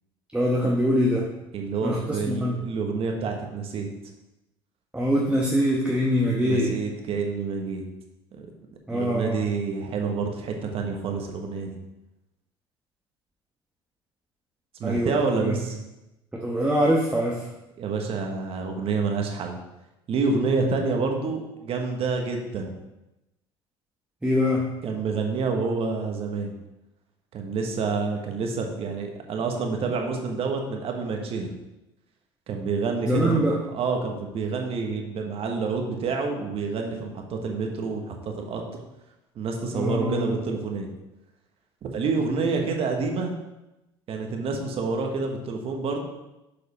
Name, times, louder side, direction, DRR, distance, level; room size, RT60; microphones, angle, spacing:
voice 1, 0.3-1.3 1.8-2.6 4.9-6.7 8.9-9.4 14.8-15.1 15.4-15.5 16.3-17.5 24.2-24.7 33.0-33.5 39.7-40.4, equal, 10° right, -3 dB, 1.1 m, -23 dB
voice 2, 1.5-3.9 6.2-7.8 8.3-8.4 8.9-11.8 14.8-15.8 17.8-19.6 20.1-22.7 24.8-26.5 27.3-31.5 32.5-38.6 39.3-40.9 41.8-43.3 44.1-46.0, right 4 dB, 50° right, 3 dB, 1.3 m, -28 dB
6.8 x 4.9 x 4.2 m, 0.96 s
hypercardioid pair, 65°, 12 cm